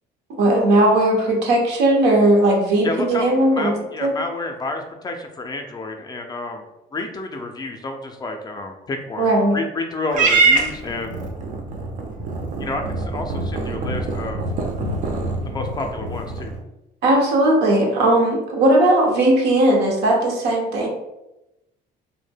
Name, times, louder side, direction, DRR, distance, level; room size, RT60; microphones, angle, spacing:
voice 1, 0.3-3.7 4.0-4.1 9.2-9.6 17.0-20.9, right 1 dB, 85° right, 0 dB, 0.7 m, -17 dB
voice 2, 2.8-3.3 3.5-6.7 6.9-11.2 12.6-14.4 15.5-16.6, left 2 dB, 25° left, 4 dB, 0.3 m, -30 dB
Purr / Meow, 10.1-16.6, right 3 dB, 50° right, 0.5 m, -24 dB
2.1 x 2.1 x 3.3 m, 0.92 s
cardioid pair, 110°, 17 cm